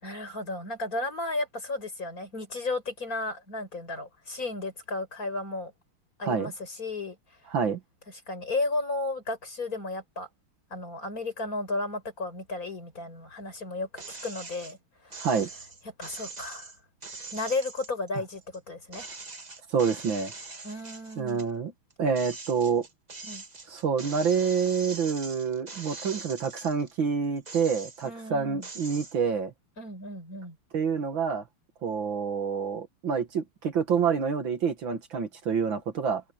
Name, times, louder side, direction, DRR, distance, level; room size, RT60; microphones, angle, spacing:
voice 1, 0.0-5.7 6.2-7.2 8.3-10.3 10.7-14.8 15.0-15.3 16.0-16.7 17.3-19.1 20.6-21.4 23.2-23.4 28.0-28.7 29.8-30.6, left 2 dB, 40° left, 5.6 m, -34 dB
sound 1, 14.0-14.7 15.1-18.6 18.9-21.5 21.9-26.9 27.4-28.2 28.6-29.2, right 3 dB, 25° right, 1.2 m, -42 dB
voice 2, 15.2-15.5 19.7-20.3 21.2-21.7 22.0-22.9 23.7-29.5 30.7-31.4 31.8-36.2, right 6 dB, 65° right, 2.4 m, -27 dB
omnidirectional pair, 2.4 m